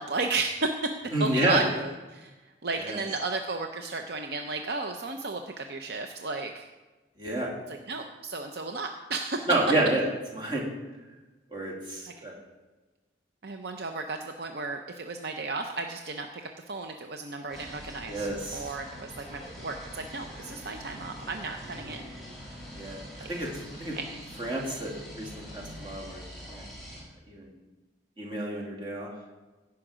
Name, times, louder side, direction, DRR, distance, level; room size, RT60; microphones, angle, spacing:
voice 1, 0.0-0.9 1.2-2.3 2.6-6.7 7.7-9.6 12.1-12.2 13.4-16.3 16.7-22.0 23.2-23.3 23.9-24.0, right 3 dB, 60° right, 5 dB, 0.6 m, -33 dB
voice 2, 1.1-1.6 2.8-3.0 7.2-7.5 9.5-10.0 10.3-10.6 11.5-12.4 18.1-18.7 22.7-23.0 23.3-23.5 23.8-23.9 24.4-26.6 27.3-27.4 28.2-29.1, right 1 dB, 25° right, -3 dB, 2.5 m, -29 dB
sound 1, 17.5-27.0, equal, ahead, 3.6 m, -44 dB
16.0 x 5.8 x 5.0 m, 1.2 s
head